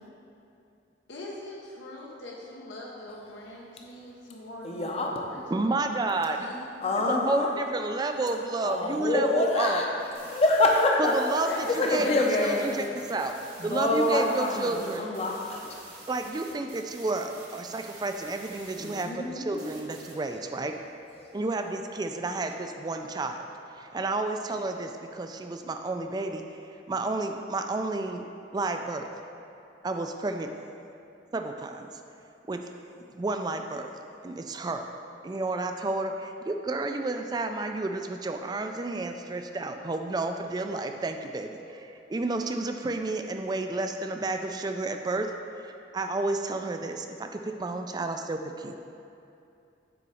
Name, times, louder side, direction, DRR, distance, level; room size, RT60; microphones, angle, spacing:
voice 1, 1.1-5.9 6.4-6.8 11.4-11.6 11.9-13.2, left 2 dB, 80° left, -4 dB, 0.8 m, -40 dB
voice 2, 4.6-5.1 6.8-7.5 8.6-9.8 10.2-12.7 13.6-15.8 18.8-19.7 21.1-21.5, left 2 dB, 35° left, 0 dB, 0.7 m, -26 dB
voice 3, 5.5-6.6 7.1-9.8 11.1-13.3 13.6-15.1 16.1-20.8 21.3-23.5 23.8-26.4 26.9-28.2 28.5-29.1 29.8-30.5 31.3-31.9 32.5-32.6 33.1-33.9 34.2-34.8 35.2-45.3 45.6-48.7, right 2 dB, 20° right, 5 dB, 0.3 m, -31 dB
sound 1, 10.1-19.0 19.6-20.1, right 3 dB, 50° right, 1.3 m, -48 dB
6.8 x 4.0 x 4.9 m, 2.7 s
head